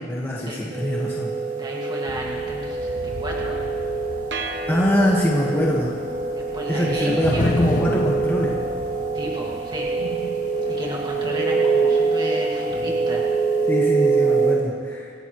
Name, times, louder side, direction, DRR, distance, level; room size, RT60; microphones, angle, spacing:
voice 1, 0.0-1.3 4.7-5.9 6.7-8.5 13.7-15.2, equal, 15° left, -5 dB, 1.5 m, -23 dB
sound 1, 0.7-14.5, right 4 dB, 45° right, 3.2 m, -24 dB
voice 2, 1.5-3.6 4.4-4.7 6.4-7.5 9.1-10.3 10.6-13.3, right 1 dB, 25° right, -3 dB, 2.1 m, -33 dB
sound 2, 2.1-13.8, left 3 dB, 45° left, 0.4 m, -33 dB
sound 3, 4.3-5.7, right 4 dB, 80° right, 1.1 m, -34 dB
27.0 x 13.5 x 3.2 m, 2.4 s
head